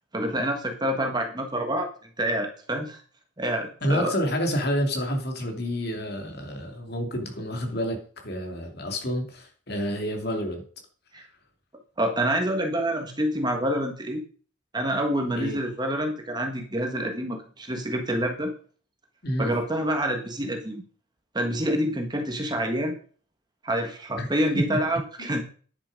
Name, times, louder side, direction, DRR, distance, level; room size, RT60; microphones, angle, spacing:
voice 1, 0.1-1.9 2.2-3.0 3.4-4.1 11.1-11.2 12.0-14.2 14.7-18.5 19.4-20.8 21.3-23.0 23.6-25.4, right 1 dB, 20° right, 3 dB, 1.5 m, -27 dB
voice 2, 3.8-10.6 15.4-15.6 19.2-19.5 24.2-24.3 24.5-24.8 25.2-25.3, equal, 50° left, 3 dB, 2.5 m, -29 dB
10.0 x 7.1 x 5.2 m, 0.42 s
head